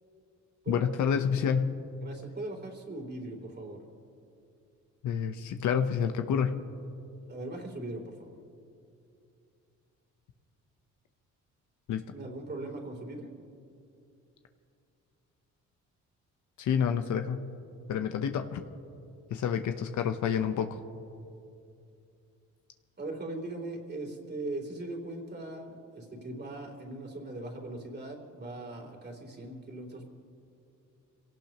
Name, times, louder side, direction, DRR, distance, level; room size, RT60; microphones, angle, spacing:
voice 1, 0.7-1.8 5.0-6.6 11.9-12.0 16.6-17.5 17.9-18.6 19.3-20.8, left 7 dB, 75° left, 7 dB, 0.9 m, -28 dB
voice 2, 2.0-3.8 7.3-8.4 12.1-13.3 23.0-30.0, right 2 dB, 35° right, 1 dB, 3.1 m, -40 dB
26.0 x 17.5 x 3.0 m, 2.6 s
cardioid pair, 90°, 30 cm